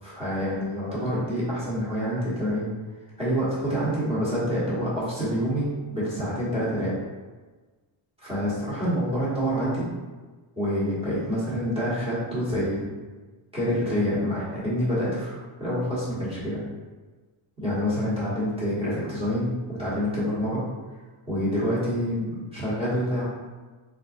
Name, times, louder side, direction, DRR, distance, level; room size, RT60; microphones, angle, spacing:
voice 1, 0.0-2.7 3.2-7.0 8.2-9.9 10.6-12.9 13.5-16.6 17.6-20.6 21.3-23.2, equal, 10° right, -10 dB, 1.2 m, -27 dB
3.8 x 2.5 x 2.5 m, 1.3 s
wide cardioid pair, 165°, 49 cm